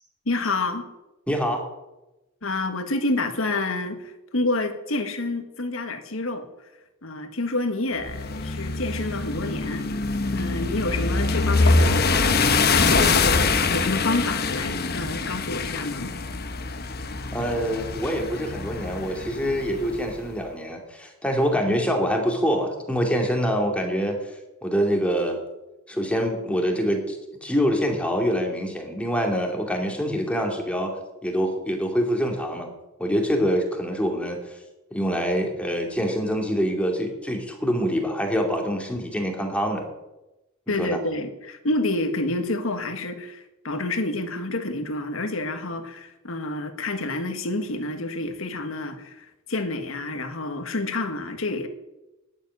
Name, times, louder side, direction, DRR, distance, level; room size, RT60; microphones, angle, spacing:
voice 1, 0.2-0.9 2.4-6.5 7.0-12.2 12.7-16.2 40.7-51.7, left 2 dB, 75° left, 8 dB, 1.6 m, -28 dB
voice 2, 1.3-1.6 17.3-24.2 24.6-25.4 25.9-31.0 31.2-32.7 33.0-34.4 34.9-39.8 40.7-41.0, equal, 5° left, 2 dB, 2.4 m, -25 dB
sound 1, 8.0-20.2, left 3 dB, 50° left, 1.0 m, -24 dB
10.5 x 9.0 x 9.5 m, 1.0 s
head